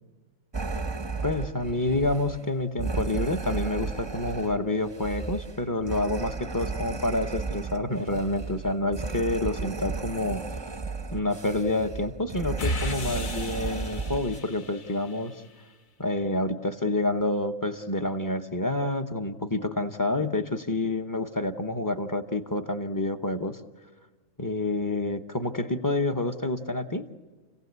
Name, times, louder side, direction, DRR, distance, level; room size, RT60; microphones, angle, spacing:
sound 1, 0.5-14.4, right 4 dB, 25° right, 0.7 m, -34 dB
voice 1, 1.2-10.4 11.1-15.3 16.0-23.6 24.4-27.1, left 2 dB, 15° left, 8 dB, 0.8 m, -28 dB
sound 2, 12.6-15.3, equal, 40° left, 0.9 m, -34 dB
29.5 x 17.0 x 8.2 m, 1.4 s
omnidirectional pair, 1.6 m